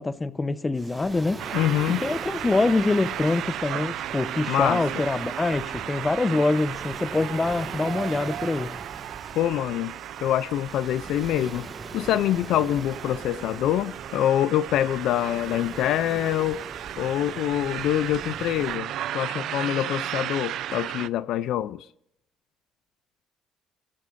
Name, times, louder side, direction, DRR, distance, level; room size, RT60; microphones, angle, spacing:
voice 1, 0.0-1.4 2.0-8.8, left 3 dB, 20° left, 0.9 m, -25 dB
Waves surf, 0.7-18.8, right 3 dB, 30° right, 1.8 m, -42 dB
sound 1, 1.4-21.1, right 12 dB, 70° right, 0.5 m, -35 dB
voice 2, 1.5-2.1 4.5-4.8 9.3-9.9 10.2-11.7 11.9-16.6 17.0-21.9, left 12 dB, 75° left, 0.5 m, -25 dB
23.0 x 14.0 x 2.6 m
supercardioid pair, 85°, 0 cm